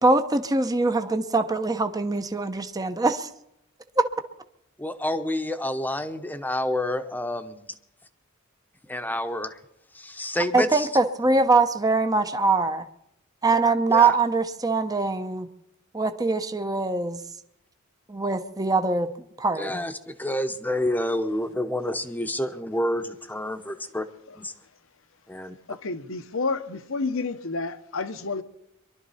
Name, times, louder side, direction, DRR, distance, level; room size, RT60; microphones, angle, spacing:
voice 1, 0.0-3.3 4.0-4.1 10.5-12.8 13.4-15.5 15.9-17.2 18.1-19.1 19.4-19.8, right 3 dB, 15° right, 0.8 m, -23 dB
voice 2, 4.8-7.7 8.9-9.6 9.9-10.9 13.9-14.1 19.5-24.1 24.4-24.5 25.3-25.5, left 1 dB, 10° left, 1.0 m, -28 dB
voice 3, 25.7-28.4, left 3 dB, 65° left, 1.0 m, -30 dB
23.5 x 12.0 x 4.2 m
head